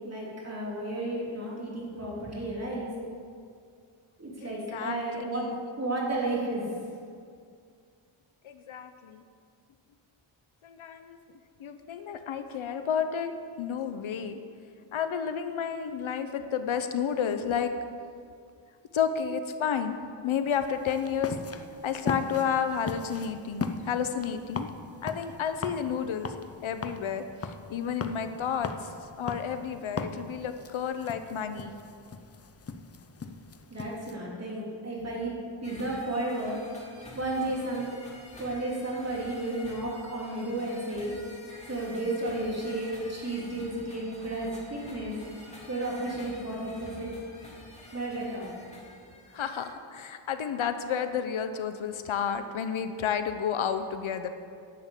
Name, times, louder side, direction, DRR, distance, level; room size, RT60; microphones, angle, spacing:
voice 1, 0.0-2.9 4.2-5.5 5.8-6.6 33.7-35.3 35.6-36.6 37.1-37.9 38.4-41.1 41.7-45.1 45.7-47.1 47.9-48.5, right 2 dB, 30° right, -5 dB, 3.6 m, -33 dB
voice 2, 4.4-5.6 8.4-9.2 10.6-11.2 11.6-13.3 13.6-14.4 14.9-17.7 18.9-20.0 20.2-21.4 21.8-24.7 25.0-26.3 26.6-31.7 49.3-54.3, left 7 dB, 70° left, 9 dB, 0.8 m, -31 dB
sound 1, 20.5-34.2, left 4 dB, 30° left, 0.6 m, -39 dB
sound 2, 35.6-49.7, left 1 dB, 15° left, 3.0 m, -49 dB
11.0 x 7.2 x 8.3 m, 2.3 s
wide cardioid pair, 125°, 49 cm